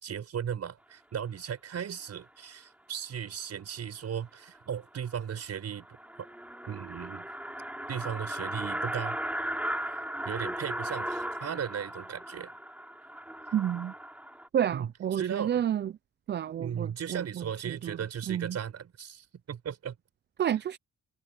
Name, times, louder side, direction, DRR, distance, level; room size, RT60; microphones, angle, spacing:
voice 1, 0.0-5.9 6.7-7.3 7.9-9.2 10.2-12.5 14.7-15.6 16.6-20.0, right 8 dB, 55° right, 5.9 m, -36 dB
sound 1, 4.5-4.6 5.0-5.1 5.4-5.5 5.7-14.5, right 1 dB, 5° right, 6.8 m, -37 dB
voice 2, 13.5-13.9 14.5-15.9 16.3-17.2 17.7-17.9 18.3-18.6 20.4-20.8, right 10 dB, 35° right, 0.4 m, -29 dB
cardioid pair, 90°, 30 cm